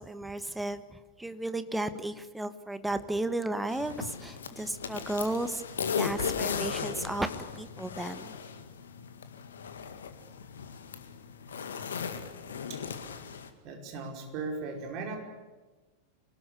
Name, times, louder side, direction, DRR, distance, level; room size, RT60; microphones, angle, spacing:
voice 1, 0.0-5.6 6.0-7.3 7.5-8.4, right 2 dB, 5° right, 11 dB, 1.5 m, -34 dB
sound 1, 3.7-13.5, left 6 dB, 65° left, 2.0 m, -37 dB
voice 2, 13.6-15.2, right 3 dB, 40° right, 2 dB, 5.1 m, -37 dB
26.0 x 19.5 x 8.3 m, 1.2 s
figure-of-eight pair, 90°, 0 cm